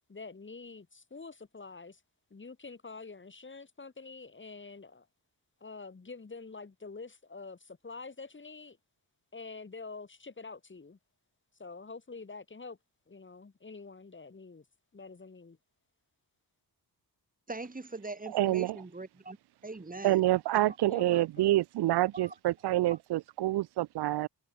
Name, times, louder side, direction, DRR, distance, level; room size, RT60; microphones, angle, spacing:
voice 1, 0.1-2.0 2.3-5.1 5.6-8.8 9.3-11.0 11.6-12.8 13.1-14.6 14.9-15.6 20.9-21.6, left 4 dB, 30° left, 2.8 m, -46 dB
voice 2, 17.5-19.4 19.6-20.2 20.5-20.7 22.1-22.3, right 3 dB, 20° right, 2.7 m, -41 dB
voice 3, 18.3-18.8 20.0-24.3, right 16 dB, 90° right, 0.5 m, -27 dB
cardioid pair, 100°, 38 cm